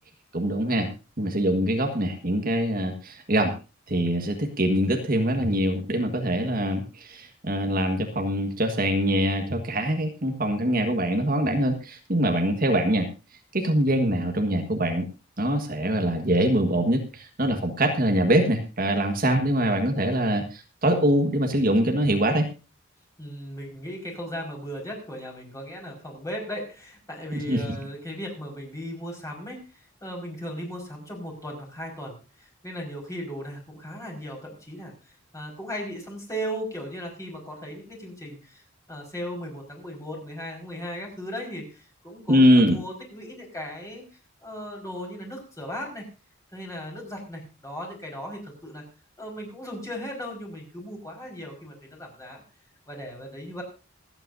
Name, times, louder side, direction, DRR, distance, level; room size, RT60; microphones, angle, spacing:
voice 1, 0.3-0.9 1.2-3.5 3.9-13.1 13.5-15.0 15.4-22.5 27.3-27.6 42.3-42.8, right 1 dB, 45° right, 5 dB, 1.6 m, -23 dB
voice 2, 23.2-29.6 30.0-38.6 38.9-44.0 44.4-46.0 46.5-48.8 49.2-52.4 52.9-53.6, equal, 15° left, 0 dB, 5.1 m, -37 dB
26.5 x 9.0 x 2.7 m, 0.31 s
head